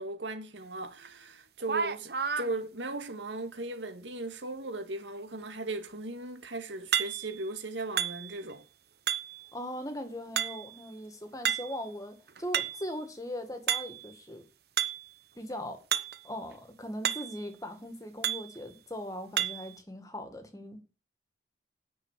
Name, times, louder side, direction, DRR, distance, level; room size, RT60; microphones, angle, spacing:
voice 1, 0.0-8.6, right 2 dB, 85° right, 1.8 m, -37 dB
sound 1, 1.0-1.1 1.6-2.5 6.9-7.4 8.0-8.5 9.1-9.5 10.4-10.8 11.4-11.8 12.3-12.9 13.7-14.1 14.8-15.1 15.9-16.2 16.5-16.6 17.0-17.4 18.2-18.6 19.4-19.7, right 8 dB, 60° right, 0.9 m, -31 dB
voice 2, 9.5-14.4 15.4-15.8 16.2-20.8, equal, 20° left, 1.9 m, -40 dB
9.8 x 6.3 x 8.1 m
head